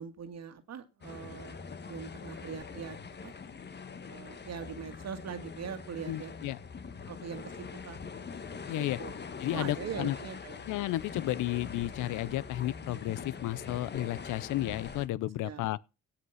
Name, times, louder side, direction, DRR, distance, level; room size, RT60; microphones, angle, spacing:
voice 1, 0.0-1.6 1.8-3.3 4.0-6.4 7.1-8.0 8.8-9.1 9.5-10.6 15.4-15.6, right 7 dB, 60° right, 1.8 m, -42 dB
sound 1, 1.0-15.1, left 5 dB, 35° left, 1.3 m, -43 dB
voice 2, 6.1-6.6 8.7-9.0 9.4-10.2 10.7-15.8, left 15 dB, 85° left, 0.6 m, -33 dB
17.5 x 5.8 x 5.7 m
cardioid pair, 90°, 30 cm